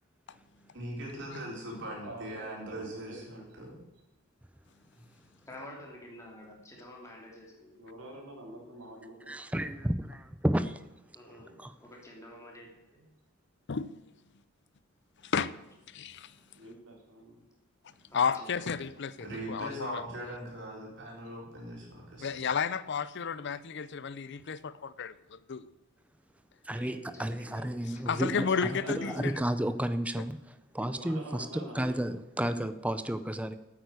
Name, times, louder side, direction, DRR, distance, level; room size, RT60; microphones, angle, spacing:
voice 1, 0.7-3.8 4.9-5.0 19.2-22.3, right 1 dB, 55° right, -2 dB, 4.1 m, -40 dB
voice 2, 1.7-3.5 7.8-9.8 16.6-17.5 18.3-18.6 21.2-21.3 27.1-27.4 28.3-29.2 30.9-32.0, equal, 80° right, -1 dB, 3.8 m, -46 dB
voice 3, 5.5-7.8 11.1-13.1 18.1-18.9 26.7-28.4 28.9-29.2, left 1 dB, 15° left, -1 dB, 2.9 m, -49 dB
voice 4, 9.3-10.8 11.6-11.7 26.6-33.6, right 1 dB, 5° right, 10 dB, 0.6 m, -32 dB
voice 5, 15.2-15.5 15.9-16.3 18.1-20.0 22.2-25.7 28.1-29.3 30.2-30.3, left 6 dB, 55° left, 16 dB, 0.6 m, -32 dB
9.1 x 9.0 x 8.3 m, 1.0 s
head